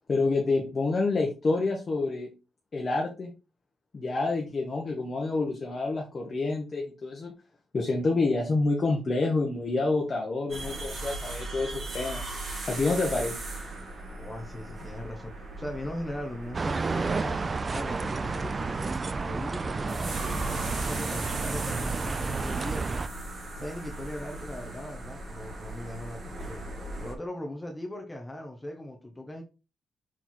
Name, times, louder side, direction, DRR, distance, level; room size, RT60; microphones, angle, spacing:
voice 1, 0.1-2.3 2.7-3.3 3.9-7.3 7.7-12.2 12.7-13.4, left 3 dB, 30° left, 0 dB, 1.2 m, -28 dB
sound 1, 10.5-27.1, right 2 dB, 45° right, 1.9 m, -38 dB
voice 2, 14.2-17.4 17.7-23.0 23.6-26.6 27.0-29.4, left 1 dB, 10° left, 1 dB, 1.0 m, -39 dB
sound 2, 16.5-23.1, right 4 dB, 25° right, 0.3 m, -31 dB
6.1 x 4.4 x 4.4 m, 0.29 s
wide cardioid pair, 180°, 0 cm